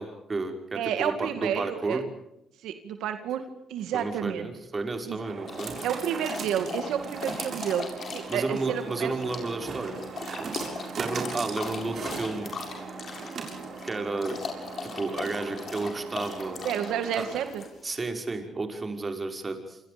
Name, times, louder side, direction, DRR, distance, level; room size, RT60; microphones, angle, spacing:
voice 1, 0.0-2.0 3.9-5.8 8.3-10.1 10.4-10.6 11.0-12.6 13.8-14.4 14.8-16.6 17.2-17.3 17.8-19.8, right 3 dB, 30° right, 5 dB, 5.5 m, -32 dB
voice 2, 0.7-2.0 2.6-3.4 3.7-4.5 5.1-5.2 5.8-9.1 16.6-17.6, right 9 dB, 85° right, 8 dB, 2.1 m, -30 dB
sound 1, 3.8-17.8, right 5 dB, 55° right, 7.0 m, -39 dB
sound 2, 5.5-18.0, left 5 dB, 50° left, 7.4 m, -39 dB
28.0 x 26.5 x 5.2 m, 0.84 s
cardioid pair, 90°, 0 cm